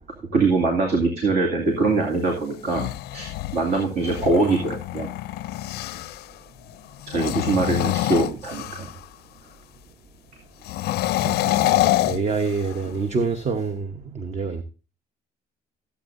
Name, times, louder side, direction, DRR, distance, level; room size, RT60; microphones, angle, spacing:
voice 1, 0.3-5.1 7.1-8.9 11.9-12.0 12.8-12.9, right 3 dB, 65° right, 2.5 m, -23 dB
sound 1, 2.5-6.3 7.0-9.0 10.6-12.9, left 16 dB, 70° left, 0.4 m, -26 dB
voice 2, 11.2-14.6, right 4 dB, 40° right, 1.0 m, -27 dB
14.5 x 8.3 x 2.6 m
cardioid pair, 110°, 17 cm